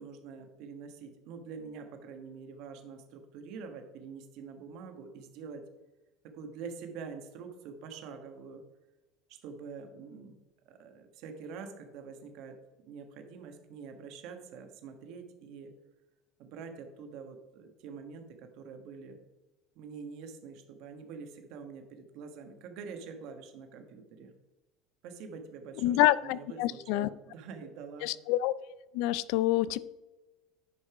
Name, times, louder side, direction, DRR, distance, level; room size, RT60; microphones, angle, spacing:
voice 1, 0.0-5.6 6.3-8.6 9.3-10.4 10.6-12.6 12.8-15.7 16.4-19.2 19.7-24.3 25.0-26.0 26.2-28.1, right 5 dB, 55° right, 5 dB, 1.3 m, -45 dB
voice 2, 25.8-27.1 28.0-28.5 28.9-29.8, left 16 dB, 65° left, 19 dB, 0.3 m, -27 dB
9.8 x 5.4 x 4.9 m, 1.1 s
cardioid pair, 160°, 0 cm